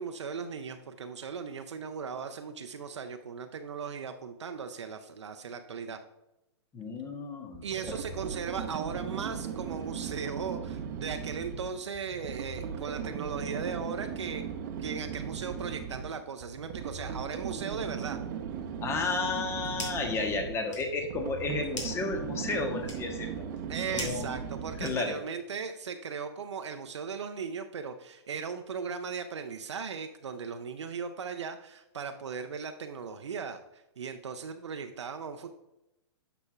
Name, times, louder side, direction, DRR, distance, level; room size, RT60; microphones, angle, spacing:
voice 1, 0.0-6.0 7.6-14.5 14.8-18.2 23.7-35.6, right 6 dB, 75° right, 7 dB, 0.6 m, -37 dB
voice 2, 6.7-8.0 18.8-23.5 23.9-24.4 24.8-25.2, left 3 dB, 15° left, 5 dB, 1.0 m, -32 dB
sound 1, 7.5-25.2, right 7 dB, 40° right, 0.8 m, -38 dB
sound 2, 19.3-20.2 20.5-25.4, left 2 dB, 80° left, 2.2 m, -43 dB
9.8 x 6.0 x 2.3 m, 0.90 s
hypercardioid pair, 120°, 15 cm